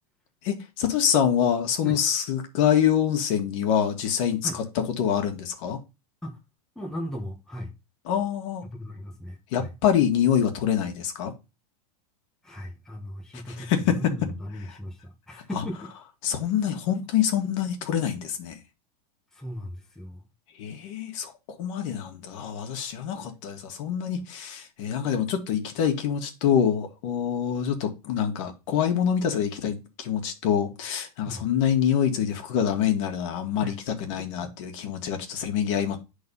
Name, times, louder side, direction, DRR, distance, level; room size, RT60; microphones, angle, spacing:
voice 1, 0.4-4.6 5.0-5.8 8.1-8.6 9.5-11.3 13.3-14.1 15.5-15.6 16.2-18.6 20.6-21.3 21.6-36.0, left 9 dB, 50° left, 1.8 m, -25 dB
voice 2, 6.7-7.7 8.6-9.7 12.4-15.0 15.3-15.9 19.3-20.2 23.2-23.3 31.2-31.4 33.6-33.7, equal, ahead, 1.2 m, -37 dB
9.4 x 4.0 x 5.5 m
supercardioid pair, 150°, 19 cm